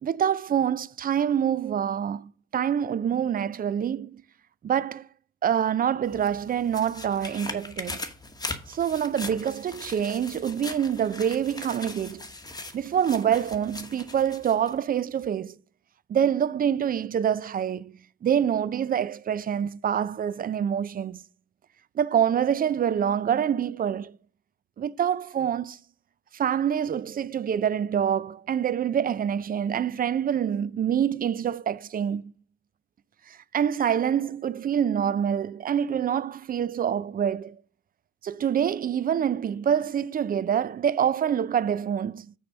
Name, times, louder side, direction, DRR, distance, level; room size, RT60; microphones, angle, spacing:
voice 1, 0.0-4.2 4.6-5.0 5.4-8.0 8.7-12.2 12.7-15.6 16.1-21.2 22.0-24.1 24.8-25.8 26.3-32.2 33.3-37.6 38.2-42.3, right 8 dB, 25° right, 0.3 m, -26 dB
sound 1, 6.0-14.8 15.2-15.3, left 2 dB, 10° left, 1.2 m, -40 dB
6.4 x 4.5 x 6.3 m
supercardioid pair, 80°, 35 cm